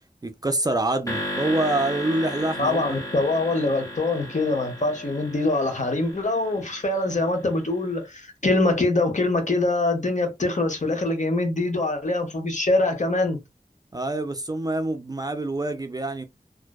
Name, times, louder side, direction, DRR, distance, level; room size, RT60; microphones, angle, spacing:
voice 1, 0.2-3.1 13.9-16.2, right 2 dB, 25° right, 0.4 m, -26 dB
sound 1, 1.1-7.4, equal, 20° left, 0.9 m, -35 dB
voice 2, 2.6-13.4, left 2 dB, 55° left, 0.8 m, -24 dB
2.5 x 2.1 x 2.2 m
wide cardioid pair, 40°, 15 cm